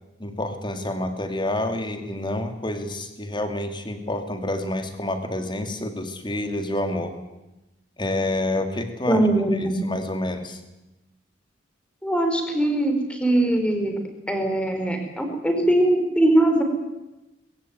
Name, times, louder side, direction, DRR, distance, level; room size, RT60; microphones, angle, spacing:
voice 1, 0.2-7.2 8.0-9.2 9.5-10.6, left 1 dB, 25° left, 7 dB, 2.5 m, -28 dB
voice 2, 9.1-9.8 12.0-16.6, right 1 dB, 5° left, 4 dB, 4.1 m, -21 dB
21.5 x 16.0 x 9.4 m, 1.0 s
head